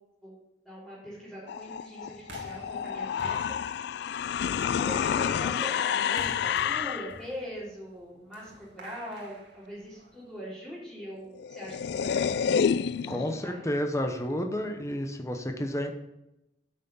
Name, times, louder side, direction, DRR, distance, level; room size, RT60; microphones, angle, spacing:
voice 1, 0.6-4.2 4.8-13.7, equal, 5° right, -11 dB, 3.8 m, -42 dB
sound 1, 1.5-7.2 11.1-11.2 11.4-13.4, left 7 dB, 65° left, 0.3 m, -29 dB
sound 2, 2.2-10.3, right 1 dB, 75° right, 2.1 m, -50 dB
voice 2, 13.1-15.9, equal, 15° left, 4 dB, 0.9 m, -31 dB
9.0 x 6.5 x 5.5 m, 0.88 s
head